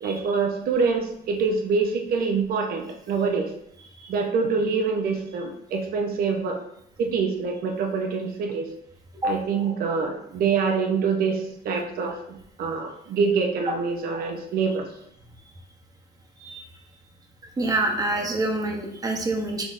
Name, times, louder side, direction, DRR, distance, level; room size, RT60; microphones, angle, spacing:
voice 1, 0.0-3.5 4.1-6.6 7.0-8.7 9.2-14.9, right 5 dB, 60° right, 3 dB, 0.7 m, -25 dB
voice 2, 17.6-19.6, right 2 dB, 20° right, 2 dB, 0.9 m, -26 dB
6.1 x 3.4 x 2.6 m, 0.74 s
cardioid pair, 110°, 17 cm